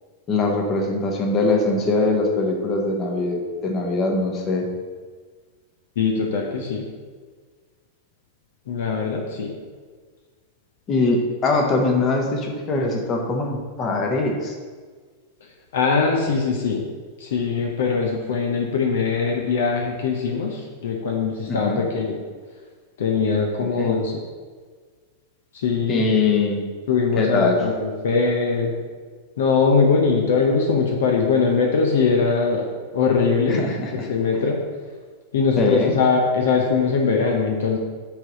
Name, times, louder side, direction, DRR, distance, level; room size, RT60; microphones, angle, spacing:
voice 1, 0.3-4.7 10.9-14.5 21.5-21.8 23.6-24.0 25.9-26.7 27.2-27.6 33.5-34.1 35.6-35.9, left 3 dB, 30° left, 2 dB, 1.3 m, -22 dB
voice 2, 6.0-6.9 8.7-9.5 15.7-16.8 17.2-22.2 23.0-24.1 25.5-26.1 26.9-28.7 29.4-32.7 32.9-33.6 33.9-34.6 35.3-37.8, left 5 dB, 60° left, 1 dB, 0.9 m, -21 dB
7.2 x 3.9 x 6.3 m, 1.5 s
figure-of-eight pair, 90°, 0 cm